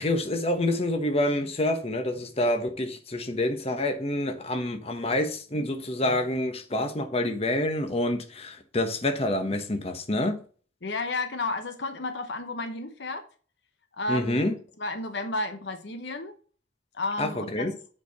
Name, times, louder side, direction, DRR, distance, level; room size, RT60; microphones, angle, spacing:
voice 1, 0.0-10.4 14.1-14.5 17.2-17.7, left 1 dB, 30° left, 1.2 m, -27 dB
voice 2, 10.8-13.2 13.9-14.4 14.8-16.4 16.9-17.6, left 2 dB, 65° left, 1.0 m, -32 dB
8.0 x 4.7 x 5.4 m
head